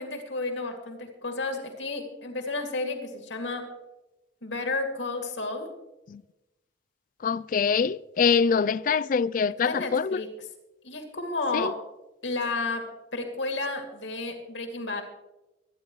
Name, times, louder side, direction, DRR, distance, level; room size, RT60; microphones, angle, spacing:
voice 1, 0.0-3.6 4.4-5.7 9.6-10.5 10.8-11.7 12.2-12.8 13.1-15.0, left 3 dB, 85° left, 2.5 m, -32 dB
voice 2, 7.2-10.2 11.5-11.7, left 6 dB, 45° left, 0.3 m, -24 dB
24.5 x 10.0 x 3.2 m
head